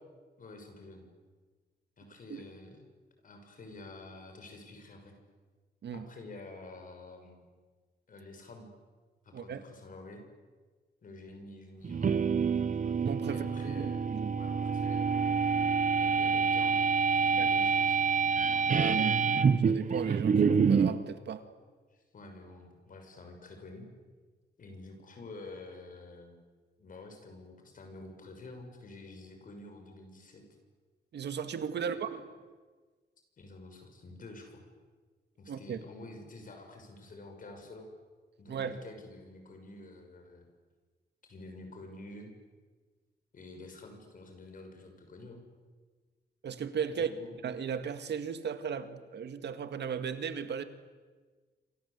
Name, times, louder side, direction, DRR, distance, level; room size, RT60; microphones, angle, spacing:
voice 1, 0.4-1.1 2.0-2.8 3.2-5.1 5.9-7.4 8.1-8.7 9.2-10.2 11.0-12.1 13.2-14.0 14.3-15.3 16.0-16.8 17.2-18.0 21.9-23.9 24.6-26.4 26.8-30.5 31.9-32.0 33.4-34.6 35.4-37.9 38.4-40.4 41.2-42.3 43.3-45.4 47.0-47.3, left 2 dB, 50° left, 5 dB, 6.4 m, -49 dB
voice 2, 9.3-9.6 13.1-14.4 17.4-17.5 18.7-19.2 19.6-21.4 31.1-32.2 35.5-35.8 38.5-38.8 46.4-47.1 47.4-50.6, right 7 dB, 80° right, 9 dB, 2.1 m, -36 dB
sound 1, 11.8-21.0, right 5 dB, 45° right, 1.2 m, -27 dB
27.5 x 25.5 x 8.4 m, 1.4 s
wide cardioid pair, 165°, 18 cm